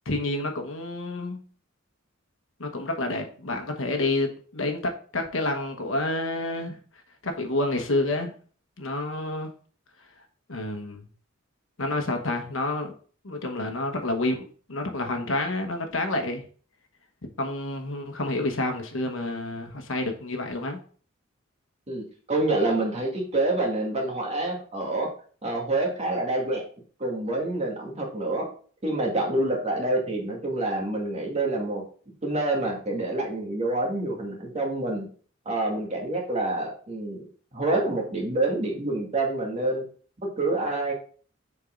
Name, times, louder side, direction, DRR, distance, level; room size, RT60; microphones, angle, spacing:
voice 1, 0.0-1.4 2.6-6.8 7.2-8.3 8.8-9.5 10.5-11.1 11.8-12.9 13.2-16.4 17.4-20.8, left 2 dB, 70° left, 5 dB, 1.2 m, -29 dB
voice 2, 21.9-25.1 25.4-26.6 27.0-28.5 28.8-31.8 32.2-35.1 35.5-37.2 37.5-39.8 40.4-40.9, right 2 dB, 35° right, -1 dB, 2.0 m, -27 dB
7.0 x 4.6 x 3.8 m, 0.43 s
head